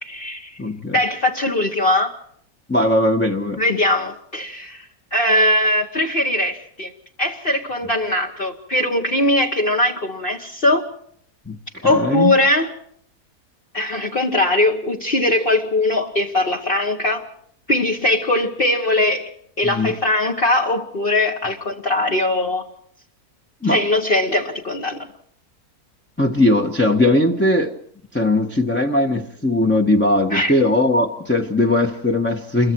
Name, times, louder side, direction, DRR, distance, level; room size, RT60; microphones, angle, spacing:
voice 1, 0.0-0.6 0.9-2.1 3.6-6.9 7.2-10.9 11.8-12.7 13.7-17.3 17.7-19.3 19.6-22.6 23.6-25.1 30.3-30.5, left 1 dB, 40° left, 0 dB, 1.5 m, -20 dB
voice 2, 0.6-1.0 2.7-3.6 11.5-12.3 19.6-19.9 23.6-23.8 26.2-27.7 28.1-32.7, left 1 dB, 10° left, 0 dB, 1.1 m, -19 dB
28.0 x 22.5 x 4.6 m, 0.64 s
omnidirectional pair, 1.6 m